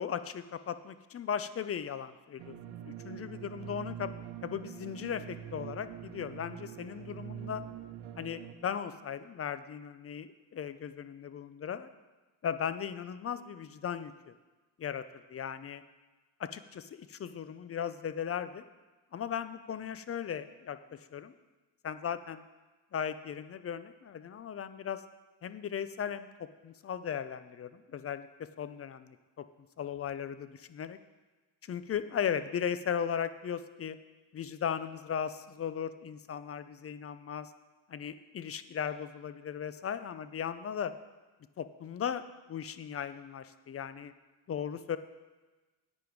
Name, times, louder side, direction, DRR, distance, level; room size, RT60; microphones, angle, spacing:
voice 1, 0.0-4.1 4.4-7.6 8.2-11.9 12.4-14.3 14.8-15.8 16.4-18.6 19.1-21.3 21.8-22.4 22.9-25.0 25.4-29.5 29.8-31.0 31.6-34.0 34.3-37.5 37.9-40.9 41.6-44.1 44.5-45.0, left 8 dB, 30° left, 13 dB, 0.5 m, -37 dB
sound 1, 2.4-8.5, right 10 dB, 90° right, 1.0 m, -44 dB
10.5 x 8.8 x 4.7 m, 1.2 s
cardioid pair, 105°, 45 cm